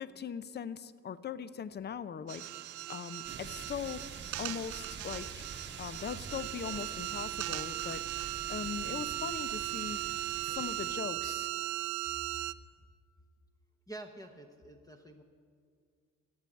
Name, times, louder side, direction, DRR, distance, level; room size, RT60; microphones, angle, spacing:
voice 1, 0.0-2.5 2.9-4.0 4.4-5.5 5.8-8.1 8.5-10.0 10.4-11.5, left 7 dB, 35° left, 15 dB, 0.6 m, -40 dB
sound 1, 2.3-12.5, right 16 dB, 75° right, 0.5 m, -38 dB
sound 2, 3.2-10.9, right 5 dB, 35° right, 1.0 m, -47 dB
voice 2, 13.9-15.2, right 2 dB, 10° left, 3 dB, 0.9 m, -48 dB
15.0 x 7.8 x 8.4 m, 2.1 s
cardioid pair, 90°, 30 cm